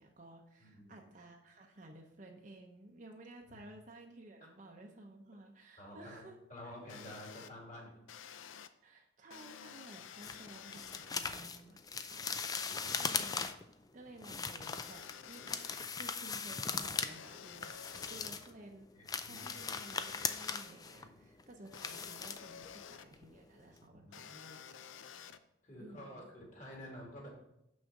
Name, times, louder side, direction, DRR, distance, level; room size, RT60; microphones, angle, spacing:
voice 1, 0.0-6.4 6.6-6.7 8.8-12.6 13.0-13.5 13.9-15.7 16.0-18.9 19.3-24.6 25.8-26.3, right 1 dB, 40° right, 1 dB, 0.7 m, -55 dB
voice 2, 0.6-1.0 3.5-3.6 5.8-8.0 10.3-10.6 11.0-11.1 12.2-12.3 12.7-13.0 15.8-16.0 18.1-18.4 18.9-19.6 21.0-21.2 23.8-24.2 25.6-27.3, left 1 dB, 40° left, -1 dB, 2.2 m, -51 dB
sound 1, 6.9-7.5 8.1-8.7 9.3-11.1 12.2-13.6 14.6-15.9 17.0-18.3 19.4-20.6 21.7-23.1 24.1-25.4, left 8 dB, 85° left, 0.5 m, -51 dB
sound 2, 10.2-13.7 14.2-17.1 17.4-18.5 18.9-22.8 23.1-23.4 23.7-23.8, left 5 dB, 20° left, 0.3 m, -39 dB
6.4 x 6.3 x 4.7 m, 0.81 s
head